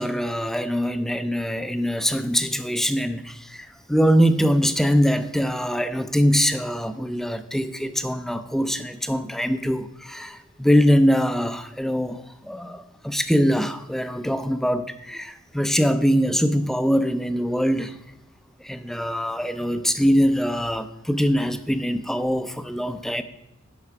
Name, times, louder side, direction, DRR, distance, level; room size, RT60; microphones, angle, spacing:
voice 1, 0.0-18.0 18.6-23.2, equal, ahead, 10 dB, 0.4 m, -23 dB
9.6 x 5.7 x 5.7 m, 0.91 s
head